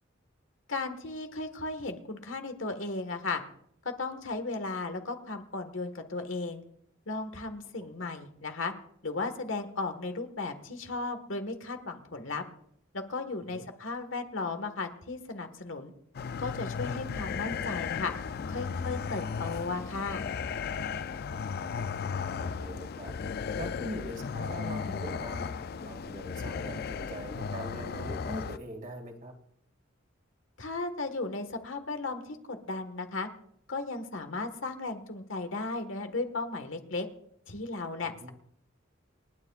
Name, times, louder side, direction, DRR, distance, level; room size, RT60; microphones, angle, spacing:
voice 1, 0.7-3.4 3.8-6.6 7.1-8.7 9.0-12.4 12.9-15.9 16.4-18.1 18.5-20.2 30.6-33.3 33.7-37.1 37.5-38.3, left 3 dB, 80° left, 7 dB, 1.5 m, -35 dB
sound 1, 16.1-28.6, left 6 dB, 50° left, 0.4 m, -35 dB
voice 2, 22.3-23.2 23.6-29.3 38.0-38.3, right 1 dB, 45° right, 3 dB, 2.1 m, -42 dB
28.5 x 9.6 x 2.4 m, 0.68 s
head